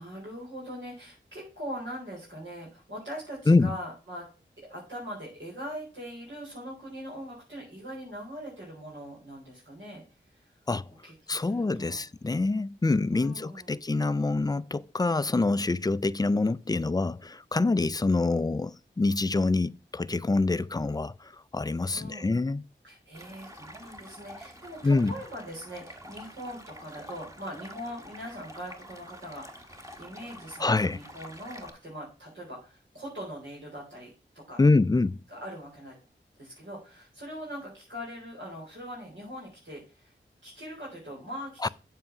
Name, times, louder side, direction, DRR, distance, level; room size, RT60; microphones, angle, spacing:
voice 1, 0.0-4.3 4.7-10.0 10.3-10.5 11.0-12.0 13.1-13.8 21.9-22.3 22.8-34.6 35.3-36.0 36.4-40.1 40.4-41.7, equal, 75° right, 3.9 m, -41 dB
voice 2, 3.5-3.8 10.7-10.9 11.3-22.6 24.8-25.1 30.6-31.0 34.6-35.2 41.6-41.7, left 3 dB, 20° left, 0.4 m, -26 dB
Stream, 23.1-31.7, equal, 15° right, 1.4 m, -47 dB
7.5 x 4.8 x 5.9 m
cardioid pair, 40°, 20 cm